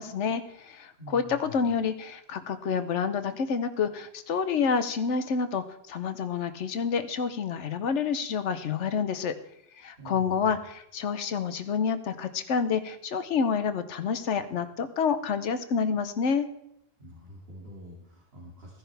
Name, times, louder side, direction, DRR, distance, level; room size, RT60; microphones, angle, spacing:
voice 1, 0.0-9.3 9.8-16.5, left 6 dB, 80° left, 11 dB, 1.2 m, -28 dB
voice 2, 1.0-1.6 10.0-10.5 17.0-18.8, equal, 60° right, -5 dB, 2.8 m, -46 dB
16.0 x 10.5 x 3.4 m, 0.76 s
omnidirectional pair, 1.2 m